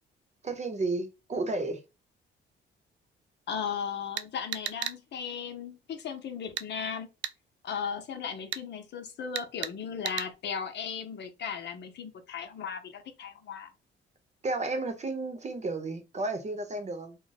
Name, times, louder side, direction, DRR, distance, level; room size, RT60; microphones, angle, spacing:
voice 1, 0.4-1.8 14.4-17.2, right 2 dB, 35° right, 0.9 m, -32 dB
voice 2, 3.5-7.1 7.6-13.7, left 7 dB, 60° left, 0.8 m, -36 dB
sound 1, 4.2-5.0 6.6-6.7 7.2-7.4 8.5-8.6 9.4-9.7 10.1-10.3, right 10 dB, 65° right, 0.4 m, -34 dB
2.4 x 2.2 x 4.0 m
cardioid pair, 90°, 20 cm